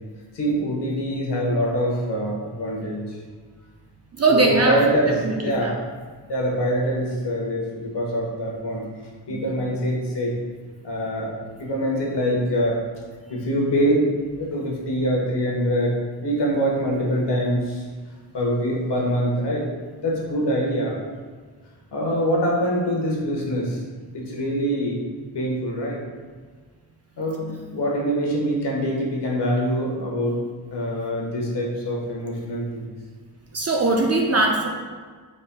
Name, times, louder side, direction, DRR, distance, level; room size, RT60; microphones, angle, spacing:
voice 1, 0.3-3.2 4.3-5.8 6.3-8.8 9.3-10.4 10.8-12.8 13.3-14.0 14.4-17.9 18.3-19.7 20.0-20.9 21.9-23.8 24.1-25.0 25.3-26.0 27.2-30.4 30.7-32.9, equal, 65° left, -3 dB, 1.2 m, -24 dB
voice 2, 4.1-4.8 5.2-5.7 9.3-9.5 33.5-34.7, right 3 dB, 35° right, 1 dB, 0.4 m, -20 dB
5.2 x 4.2 x 2.2 m, 1.5 s
wide cardioid pair, 155°, 44 cm